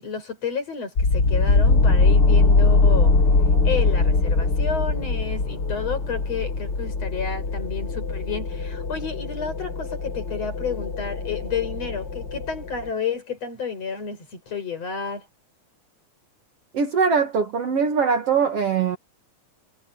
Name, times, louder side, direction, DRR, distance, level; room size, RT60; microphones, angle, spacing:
voice 1, 0.0-3.1 3.6-15.3, left 6 dB, 50° left, 6.5 m, -31 dB
sound 1, 1.0-12.9, left 3 dB, 30° left, 4.1 m, -21 dB
voice 2, 16.7-19.0, right 6 dB, 55° right, 2.3 m, -21 dB
omnidirectional pair, 3.8 m